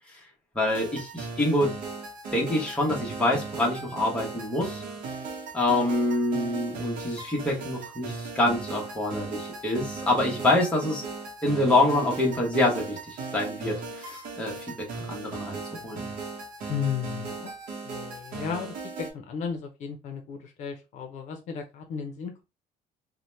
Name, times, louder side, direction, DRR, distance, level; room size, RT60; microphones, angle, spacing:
voice 1, 0.5-1.8 2.3-4.8 5.5-11.0 11.4-14.6 15.1-16.1, left 1 dB, 5° left, -2 dB, 0.9 m, -26 dB
sound 1, 0.7-19.1, right 4 dB, 70° right, 0.8 m, -38 dB
voice 2, 16.7-17.5 17.8-22.4, left 7 dB, 55° left, 5 dB, 0.6 m, -34 dB
2.8 x 2.1 x 3.1 m, 0.27 s
cardioid pair, 155°, 14 cm